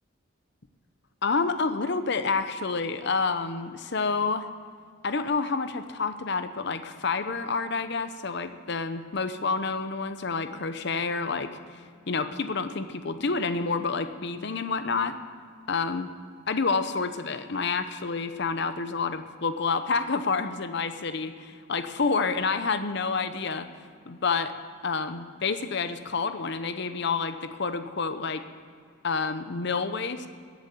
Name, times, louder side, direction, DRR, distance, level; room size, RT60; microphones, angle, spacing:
voice 1, 1.2-4.5 5.0-15.1 15.7-16.1 16.5-23.7 24.1-24.5 24.8-28.4 29.0-30.3, left 4 dB, 55° left, 10 dB, 0.8 m, -29 dB
14.0 x 8.2 x 8.3 m, 2.2 s
head